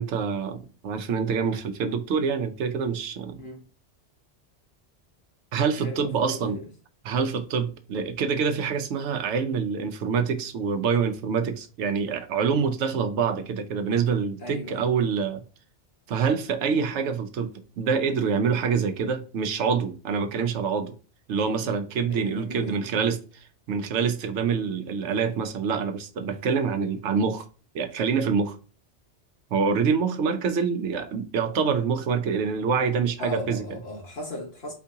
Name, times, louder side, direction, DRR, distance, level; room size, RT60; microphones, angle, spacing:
voice 1, 0.0-3.4 5.5-6.6 7.0-15.4 16.1-17.5 17.8-20.9 21.3-23.2 23.7-27.4 27.7-28.6 29.5-33.6, right 6 dB, 80° right, 0.9 m, -26 dB
voice 2, 5.8-6.7 12.5-12.7 14.4-14.9 22.0-22.8 33.2-34.7, equal, 60° left, 1.5 m, -36 dB
4.5 x 2.8 x 3.4 m
omnidirectional pair, 1.2 m